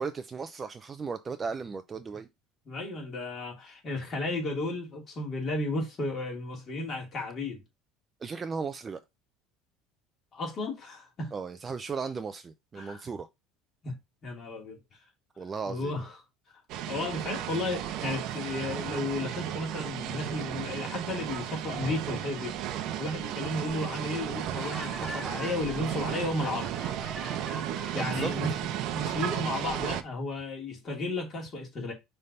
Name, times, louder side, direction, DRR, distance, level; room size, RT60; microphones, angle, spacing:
voice 1, 0.0-2.3 8.2-9.0 11.3-13.3 15.4-16.0 27.9-28.3, right 5 dB, 20° right, 0.4 m, -36 dB
voice 2, 2.7-7.6 10.3-11.3 12.8-13.0 13.8-13.9 14.2-14.8 15.6-16.1 16.9-22.6 23.0-26.7 27.9-28.5 28.8-31.9, left 2 dB, 25° left, 2.7 m, -33 dB
sound 1, 16.7-30.0, right 11 dB, 50° right, 0.7 m, -34 dB
Laughter, 24.4-28.4, left 1 dB, ahead, 0.8 m, -43 dB
5.6 x 3.3 x 5.4 m
cardioid pair, 155°, 0 cm